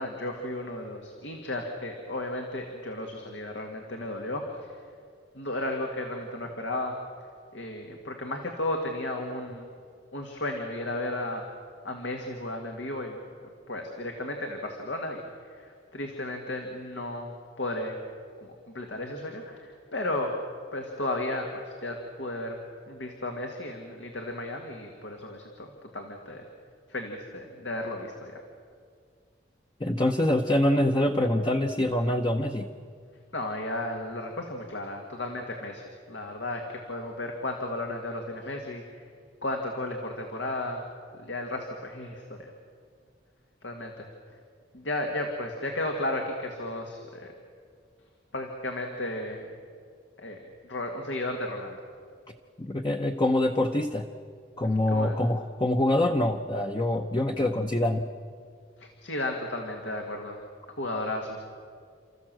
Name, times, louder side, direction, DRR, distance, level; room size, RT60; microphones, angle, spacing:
voice 1, 0.0-4.8 5.3-7.0 7.5-9.7 10.1-11.4 11.8-13.2 13.7-18.0 18.4-20.3 20.7-22.6 22.9-26.5 26.9-28.4 33.3-39.0 39.4-40.8 41.1-42.5 43.6-44.1 44.7-47.3 48.3-49.5 50.2-50.4 50.6-51.8 54.9-55.2 58.8-60.4 60.8-61.4, left 1 dB, 85° left, 2 dB, 2.1 m, -34 dB
voice 2, 29.8-32.7 52.6-54.1 54.6-58.1, left 1 dB, 25° left, 4 dB, 0.8 m, -25 dB
30.0 x 14.0 x 7.6 m, 2.1 s
head